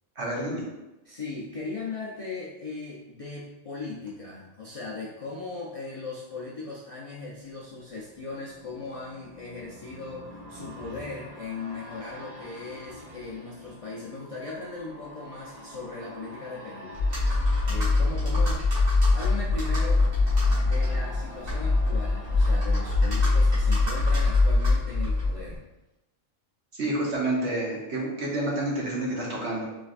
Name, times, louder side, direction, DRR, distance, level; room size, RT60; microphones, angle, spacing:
voice 1, 0.2-0.6 26.7-29.6, right 1 dB, 60° right, -4 dB, 1.2 m, -29 dB
voice 2, 1.1-16.9 17.7-18.6 19.1-20.0 20.6-25.6, left 3 dB, 65° left, -5 dB, 0.3 m, -38 dB
sound 1, 7.4-25.2 25.6-25.7, equal, 30° right, 1.5 m, -46 dB
Computer keyboard, 16.9-25.6, left 3 dB, 75° right, 1.6 m, -23 dB
4.0 x 3.3 x 2.5 m, 0.98 s
omnidirectional pair, 1.4 m